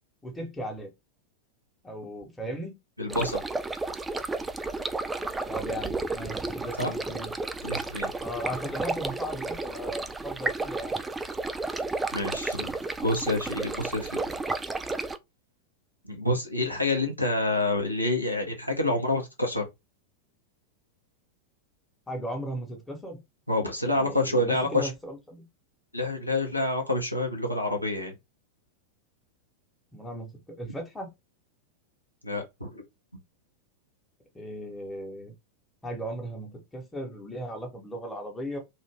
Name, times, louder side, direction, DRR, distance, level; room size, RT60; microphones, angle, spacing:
voice 1, 0.2-0.9 1.8-2.7 5.5-7.3 8.2-11.0 22.1-23.2 23.8-25.4 29.9-31.1 34.3-35.3 35.8-38.6, right 1 dB, 10° left, 1.0 m, -37 dB
voice 2, 3.0-3.4 6.8-6.9 7.6-8.1 12.1-12.7 13.0-14.1 16.1-19.6 23.5-24.9 25.9-28.1 32.2-32.8, left 2 dB, 90° left, 0.8 m, -27 dB
sound 1, 3.1-15.2, right 3 dB, 10° right, 0.3 m, -32 dB
2.6 x 2.4 x 3.3 m
figure-of-eight pair, 90°, 0 cm